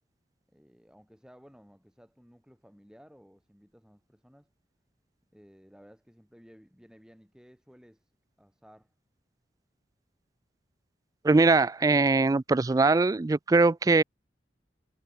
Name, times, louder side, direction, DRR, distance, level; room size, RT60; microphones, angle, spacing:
voice 1, 0.5-4.5 5.3-8.1 8.4-8.9, equal, 5° right, 6.5 m, -56 dB
voice 2, 11.2-14.0, right 3 dB, 20° right, 0.3 m, -22 dB
head